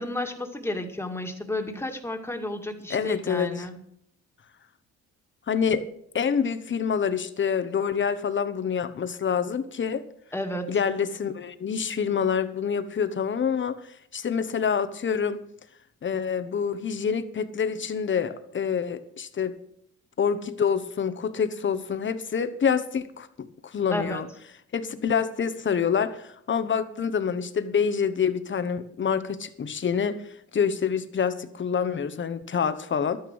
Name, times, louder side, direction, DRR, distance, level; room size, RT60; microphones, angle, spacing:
voice 1, 0.0-3.8 10.3-10.7 23.9-24.2, left 1 dB, 10° left, 4 dB, 2.1 m, -32 dB
voice 2, 2.9-3.7 5.5-5.8 6.1-10.0 10.7-13.8 14.1-15.4 16.0-19.5 20.2-24.3 24.7-30.2 30.5-33.2, left 7 dB, 40° left, 11 dB, 1.2 m, -27 dB
12.0 x 9.6 x 6.3 m, 0.71 s
cardioid pair, 90°, 30 cm